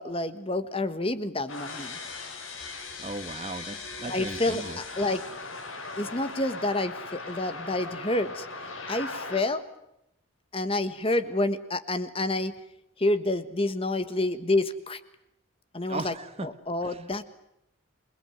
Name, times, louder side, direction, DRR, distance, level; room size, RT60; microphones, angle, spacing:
voice 1, 0.0-2.0 4.1-5.2 6.0-9.6 10.5-12.5 13.0-15.0 15.7-16.1 16.4-17.2, left 2 dB, 25° left, 11 dB, 1.4 m, -28 dB
sound 1, 1.5-9.4, left 3 dB, 80° left, 5.8 m, -39 dB
voice 2, 3.0-4.8 15.9-16.5 16.9-17.0, right 2 dB, 30° right, 11 dB, 1.3 m, -37 dB
27.5 x 21.5 x 9.4 m, 0.84 s
head